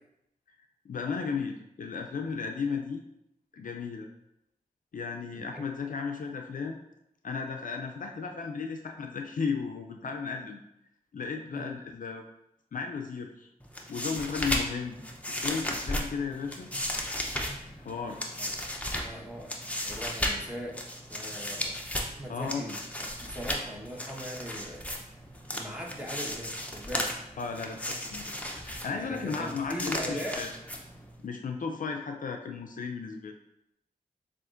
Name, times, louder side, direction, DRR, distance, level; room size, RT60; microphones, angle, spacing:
voice 1, 0.9-3.0 3.5-4.1 4.9-6.8 7.2-10.6 11.1-12.2 12.7-13.5 13.9-15.0 15.3-16.7 17.8-18.3 22.3-22.6 27.4-28.3 28.6-30.5 31.2-33.3, left 5 dB, 60° left, 3 dB, 0.4 m, -34 dB
voice 2, 5.3-5.6 11.5-11.7 18.4-18.5 19.0-19.5 19.8-20.8 21.1-21.8 22.2-24.8 25.5-27.1 28.9-30.4, equal, 5° right, -2 dB, 1.1 m, -40 dB
sound 1, 13.6-31.2, left 1 dB, 10° left, 0.6 m, -35 dB
6.8 x 2.5 x 2.5 m, 0.82 s
cardioid pair, 45°, 15 cm